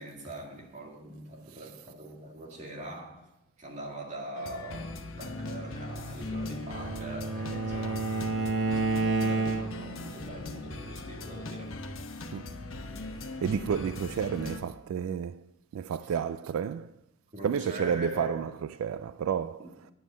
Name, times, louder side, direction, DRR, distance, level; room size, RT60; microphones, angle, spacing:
voice 1, 0.0-3.3 3.6-11.8 16.1-16.2 17.3-18.4 19.6-19.7, right 1 dB, 35° right, 2.3 m, -42 dB
sound 1, 4.4-14.6, left 2 dB, 80° left, 1.0 m, -40 dB
Bowed string instrument, 6.0-10.0, right 3 dB, 65° right, 1.1 m, -30 dB
voice 2, 13.0-16.9 17.4-19.6, right 7 dB, 85° right, 0.3 m, -31 dB
9.9 x 7.3 x 6.3 m
head